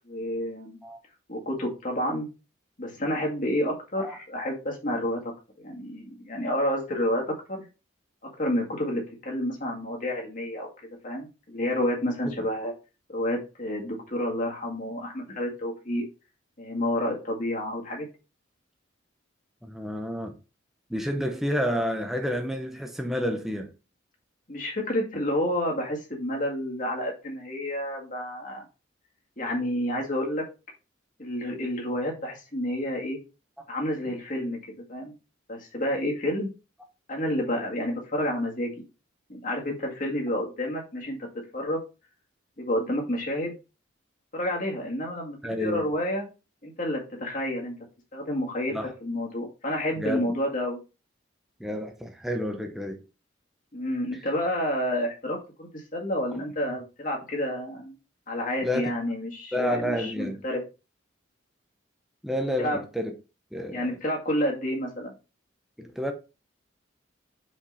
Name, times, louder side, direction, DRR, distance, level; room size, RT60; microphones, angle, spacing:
voice 1, 0.1-0.8 1.3-2.3 2.8-5.2 5.6-7.2 7.5-7.6 8.4-10.7 11.0-12.7 13.1-16.0 16.6-18.1 24.5-28.6 29.4-30.4 31.2-33.2 33.7-35.1 35.5-36.5 37.1-38.7 39.3-41.2 41.5-41.8 42.6-43.5 44.3-46.3 46.6-47.8 48.1-50.8 53.7-58.0 58.3-60.6 62.6-62.8 63.7-65.2, left 1 dB, 40° left, 2.0 m, -29 dB
voice 2, 19.6-20.4 20.9-23.7 45.4-45.9 48.7-48.9 50.0-50.2 51.6-53.0 58.6-58.9 59.5-60.4 62.2-63.1 63.5-63.9 65.8-66.1, equal, ahead, 0.8 m, -30 dB
5.5 x 5.3 x 4.0 m
head